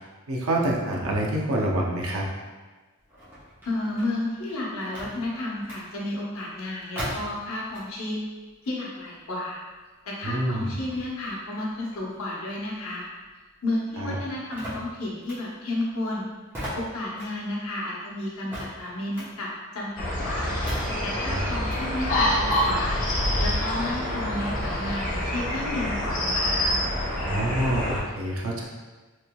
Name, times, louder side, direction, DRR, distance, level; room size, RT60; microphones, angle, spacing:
voice 1, 0.3-2.3 10.2-10.7 14.0-14.2 21.3-21.4 27.2-28.6, right 1 dB, 90° right, -1 dB, 0.6 m, -27 dB
sound 1, 3.0-8.2 8.5-13.3 13.6-21.9, equal, 10° right, 0.9 m, -41 dB
voice 2, 3.6-8.2 8.6-9.6 10.1-13.1 13.6-16.3 16.8-19.5 19.7-20.5 21.0-22.9 23.4-26.5, left 1 dB, 90° left, -4 dB, 0.8 m, -32 dB
sound 2, 20.0-28.0, left 1 dB, 40° left, 0.6 m, -26 dB
3.1 x 2.9 x 2.2 m, 1.3 s
head